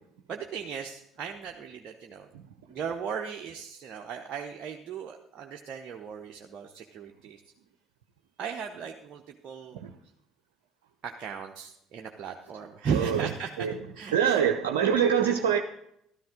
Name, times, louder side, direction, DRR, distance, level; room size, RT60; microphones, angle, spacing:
voice 1, 0.3-2.3 2.7-7.4 8.4-9.8 11.0-13.7 13.9-14.4, right 6 dB, 45° right, 3 dB, 0.9 m, -37 dB
voice 2, 12.9-13.3 13.6-13.7 14.1-15.6, right 8 dB, 70° right, 4 dB, 0.7 m, -24 dB
13.0 x 13.0 x 3.8 m, 0.76 s
figure-of-eight pair, 55°, 0 cm